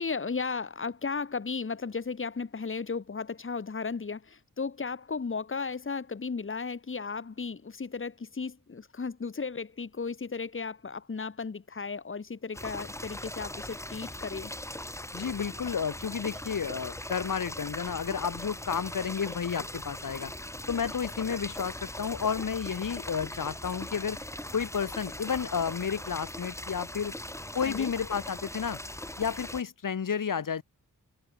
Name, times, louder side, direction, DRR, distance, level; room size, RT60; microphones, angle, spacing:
voice 1, 0.0-14.5 27.6-27.9, left 5 dB, 40° left, 2.7 m, -35 dB
sound 1, 12.5-29.6, left 1 dB, 10° left, 6.3 m, -40 dB
voice 2, 15.1-20.3 20.7-24.2 24.5-27.1 27.5-28.8 29.2-30.6, left 7 dB, 75° left, 3.9 m, -31 dB
wide cardioid pair, 150°, 33 cm